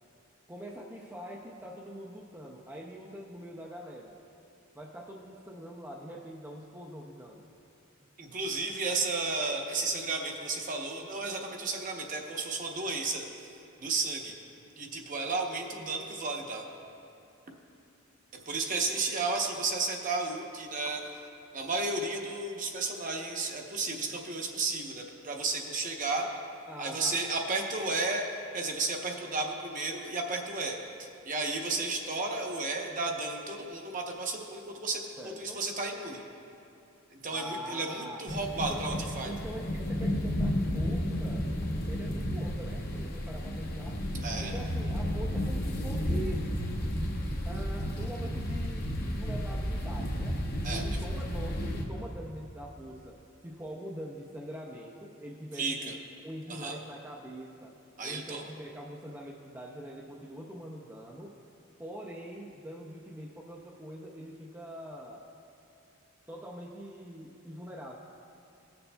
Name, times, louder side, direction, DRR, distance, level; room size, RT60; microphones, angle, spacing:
voice 1, 0.5-4.2 4.7-7.5 26.7-27.3 35.2-35.6 37.3-39.0 39.2-41.5 41.9-44.0 44.4-46.4 47.4-50.4 50.7-56.0 56.2-61.3 61.8-65.3 66.3-68.0, right 1 dB, 10° right, -3 dB, 0.5 m, -43 dB
voice 2, 8.2-13.5 13.8-14.3 14.8-16.6 18.5-21.0 21.5-26.3 26.8-28.2 28.5-30.8 31.3-36.2 37.1-39.3 44.2-44.5 50.6-50.8 55.6-55.9 56.5-56.8 58.0-58.4, right 3 dB, 35° right, 2 dB, 0.8 m, -33 dB
sound 1, 38.3-51.8, equal, 45° left, 0.8 m, -32 dB
18.0 x 6.8 x 2.2 m, 2.6 s
head